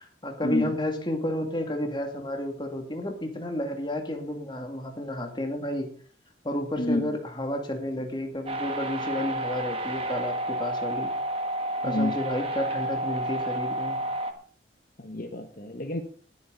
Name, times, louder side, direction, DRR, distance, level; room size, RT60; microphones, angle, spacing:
voice 1, 0.0-5.9 6.4-11.1 11.8-14.0, left 1 dB, 25° left, 4 dB, 2.5 m, -31 dB
voice 2, 6.8-7.1 11.8-12.1 15.0-16.0, left 1 dB, 50° left, 5 dB, 1.2 m, -29 dB
sound 1, 8.5-14.3, right 1 dB, 30° right, 1.6 m, -30 dB
20.0 x 8.5 x 4.1 m, 0.43 s
head